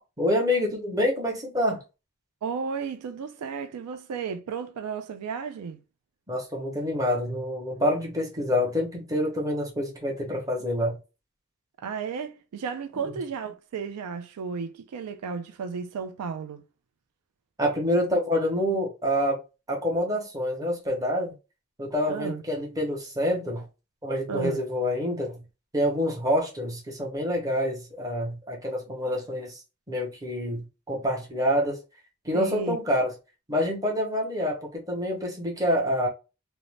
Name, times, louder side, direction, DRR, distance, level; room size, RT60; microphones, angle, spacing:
voice 1, 0.2-1.8 6.3-11.0 13.0-13.2 17.6-19.4 19.7-21.3 21.8-23.7 24.0-25.4 25.7-29.6 29.9-31.8 32.2-33.1 33.5-36.1, equal, 15° right, 0.8 m, -27 dB
voice 2, 2.4-5.8 11.8-16.6 22.1-22.4 24.3-24.6 32.3-32.8, right 6 dB, 90° right, 0.4 m, -33 dB
2.5 x 2.0 x 3.1 m
head